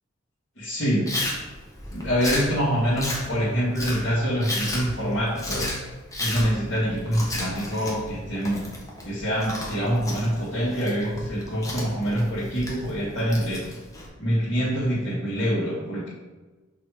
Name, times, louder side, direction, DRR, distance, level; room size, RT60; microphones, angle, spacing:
voice 1, 0.6-1.1 1.9-5.7 6.2-8.6 9.0-13.6 14.2-16.1, equal, 75° left, -12 dB, 1.8 m, -25 dB
Chewing mastication, 1.1-14.1, left 1 dB, 15° left, 1.1 m, -34 dB
6.2 x 3.2 x 4.8 m, 1.2 s
head